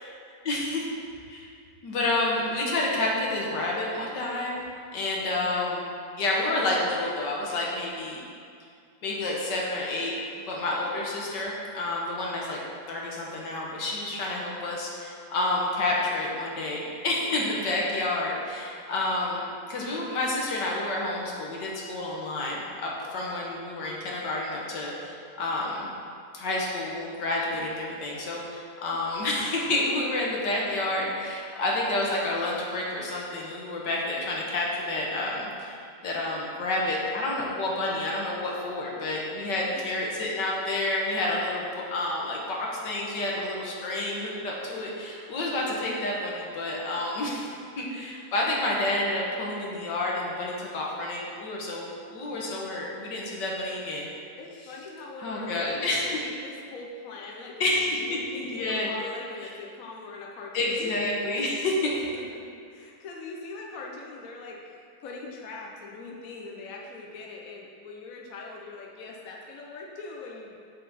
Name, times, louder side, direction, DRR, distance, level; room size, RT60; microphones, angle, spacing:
voice 1, 0.5-0.9 1.3-1.5 1.8-4.6 4.9-5.9 6.2-8.2 9.0-10.1 10.5-12.6 12.9-19.4 19.7-25.9 26.3-54.1 55.2-56.2 57.6-58.9 59.4-59.5 60.5-62.0, left 2 dB, 85° left, -3 dB, 1.9 m, -29 dB
voice 2, 54.4-57.5 57.9-60.9 62.7-70.6, left 3 dB, 60° left, -1 dB, 1.2 m, -41 dB
8.1 x 6.2 x 4.2 m, 2.3 s
omnidirectional pair, 1.8 m